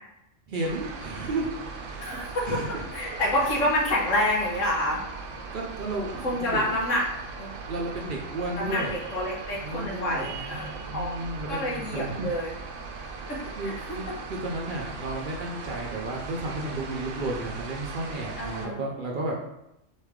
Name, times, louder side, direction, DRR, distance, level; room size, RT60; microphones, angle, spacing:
voice 1, 0.5-1.5 1.8-2.2 2.4-2.9 3.4-3.6 5.5-6.6 7.7-9.0 9.5-12.3 13.6-19.3, right 2 dB, 55° right, -1 dB, 0.6 m, -33 dB
sound 1, 0.6-18.7, right 4 dB, 85° right, 1.0 m, -39 dB
voice 2, 2.0-2.6 2.9-5.0 6.2-7.1 7.4-7.6 8.6-11.1 11.5-12.5 13.3-14.0 18.4-18.8, left 1 dB, 85° left, -3 dB, 1.5 m, -28 dB
4.0 x 3.2 x 3.6 m, 0.87 s
omnidirectional pair, 1.3 m